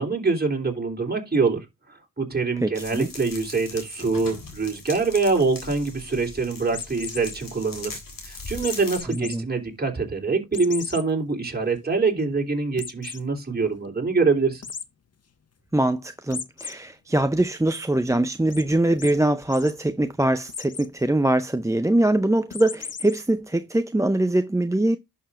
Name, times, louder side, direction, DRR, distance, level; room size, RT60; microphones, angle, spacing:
voice 1, 0.0-7.9 8.2-14.6, right 4 dB, 25° right, 3.3 m, -25 dB
voice 2, 2.6-3.1 9.1-9.5 15.7-25.0, right 1 dB, 10° right, 0.6 m, -23 dB
sound 1, 2.7-9.0, left 3 dB, 70° left, 3.7 m, -40 dB
sound 2, 6.7-7.4 8.6-9.3 9.8-9.9 10.5-11.0 11.5-11.6 11.9-12.0 12.8-13.2 14.6-14.8 16.3-16.7 17.2-17.8 18.5-18.6 19.0-19.1 19.4-19.7 20.5-20.9 22.5-23.2, left 6 dB, 45° left, 0.9 m, -36 dB
11.0 x 6.9 x 2.5 m
cardioid pair, 55°, 35 cm